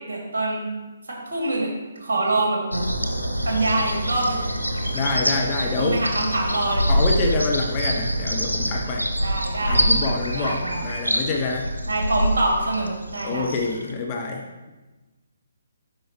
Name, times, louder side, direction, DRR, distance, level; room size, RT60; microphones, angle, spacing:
voice 1, 0.1-0.7 1.1-1.7 1.9-2.6 3.4-4.4 5.8-6.9 9.2-9.9 10.3-10.8 11.9-13.5, right 2 dB, 60° right, -2 dB, 2.6 m, -25 dB
sound 1, 2.7-13.9, equal, 90° right, 1.1 m, -25 dB
voice 2, 4.9-6.0 6.9-9.1 9.6-11.7 13.2-14.4, left 3 dB, 25° left, 0 dB, 0.8 m, -26 dB
10.5 x 4.6 x 3.2 m, 1.2 s
figure-of-eight pair, 135°, 0 cm